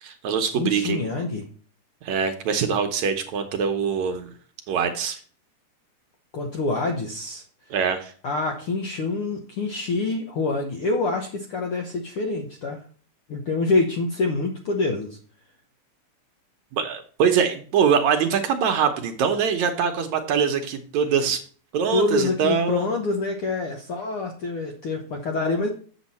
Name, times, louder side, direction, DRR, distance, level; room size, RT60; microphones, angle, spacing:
voice 1, 0.0-1.0 2.0-4.3 4.7-5.2 7.7-8.1 16.7-21.4 21.7-22.9, right 7 dB, 70° right, 6 dB, 2.0 m, -23 dB
voice 2, 0.5-1.4 6.3-7.4 8.2-12.8 13.3-15.2 21.9-25.7, left 3 dB, 65° left, 2 dB, 1.4 m, -26 dB
8.1 x 7.3 x 4.2 m, 0.43 s
omnidirectional pair, 3.8 m